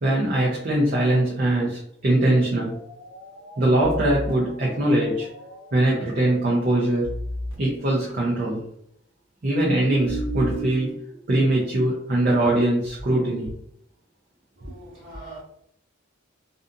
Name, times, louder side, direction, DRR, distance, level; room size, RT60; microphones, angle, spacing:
voice 1, 0.0-2.7 3.6-5.3 5.7-7.1 7.6-8.6 9.4-10.9 11.3-13.5, right 1 dB, 45° right, -4 dB, 0.5 m, -22 dB
sound 1, 2.1-6.7 7.0-7.5 8.1-8.2 9.6-10.9, right 1 dB, 65° right, 1.1 m, -34 dB
voice 2, 14.6-15.4, right 2 dB, 90° right, -8 dB, 0.9 m, -41 dB
2.5 x 2.4 x 2.6 m, 0.71 s
head